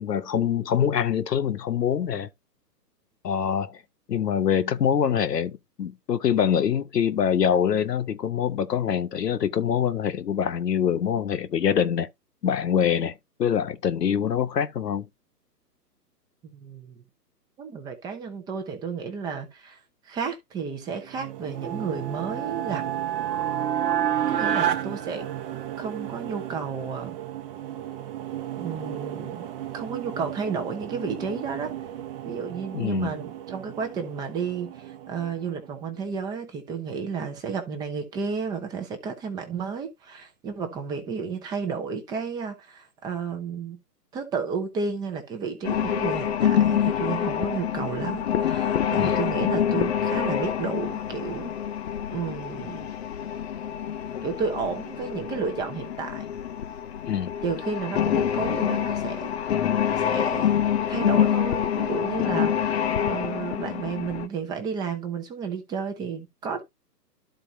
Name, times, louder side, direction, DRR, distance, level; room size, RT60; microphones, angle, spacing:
voice 1, 0.0-2.3 3.2-3.8 4.1-12.1 12.4-13.1 13.4-15.1 32.7-33.2 49.0-49.2 57.1-57.3, left 8 dB, 75° left, 1.1 m, -24 dB
voice 2, 16.4-16.9 17.6-19.8 20.0-22.8 24.3-25.3 25.8-27.2 28.6-31.7 32.2-43.8 44.1-51.6 52.1-52.9 54.2-56.3 57.4-60.5 60.9-66.6, right 5 dB, 10° right, 0.7 m, -32 dB
sound 1, 20.8-36.1, right 12 dB, 35° right, 1.0 m, -37 dB
sound 2, 21.6-25.9, right 9 dB, 80° right, 1.5 m, -27 dB
sound 3, 45.6-64.3, left 9 dB, 40° left, 0.9 m, -26 dB
12.5 x 4.3 x 2.7 m
hypercardioid pair, 140°, 49 cm